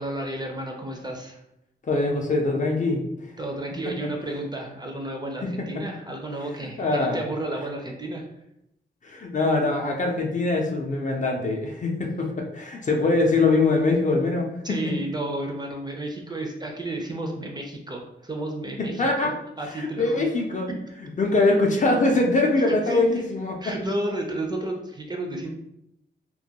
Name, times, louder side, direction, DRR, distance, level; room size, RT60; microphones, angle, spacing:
voice 1, 0.0-1.4 3.4-8.3 14.6-20.3 22.6-23.2 23.6-25.5, right 1 dB, 20° right, 1 dB, 0.4 m, -32 dB
voice 2, 1.8-3.0 3.9-4.0 5.4-5.7 6.8-7.2 9.0-14.9 18.8-19.3 19.7-20.7 21.2-23.7, left 2 dB, 40° left, 1 dB, 0.4 m, -23 dB
2.2 x 2.1 x 2.7 m, 0.81 s
wide cardioid pair, 115°, 19 cm